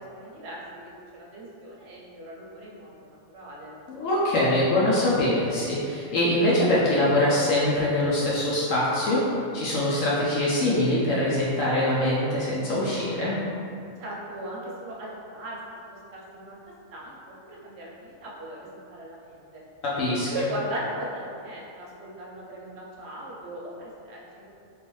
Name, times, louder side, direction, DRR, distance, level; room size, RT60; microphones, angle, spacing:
voice 1, 0.0-3.7 14.0-15.6 15.9-19.6 20.3-24.5, right 1 dB, 60° right, -4 dB, 0.8 m, -38 dB
voice 2, 3.9-9.2 9.5-13.3 20.0-20.3, left 1 dB, 70° left, -7 dB, 1.0 m, -23 dB
3.4 x 2.5 x 3.0 m, 2.5 s
omnidirectional pair, 1.4 m